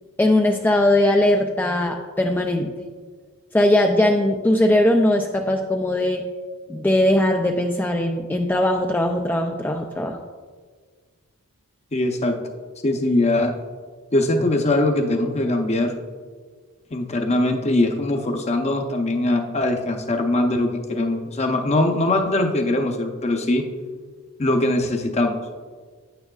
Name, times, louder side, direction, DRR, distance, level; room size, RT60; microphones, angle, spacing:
voice 1, 0.2-2.9 3.5-6.3 6.7-10.2, left 1 dB, 10° left, 3 dB, 0.3 m, -20 dB
voice 2, 11.9-12.4 12.8-13.5 14.1-16.0 16.9-23.7 24.4-25.4, left 2 dB, 30° left, 4 dB, 0.7 m, -21 dB
9.8 x 8.9 x 2.4 m, 1.6 s
head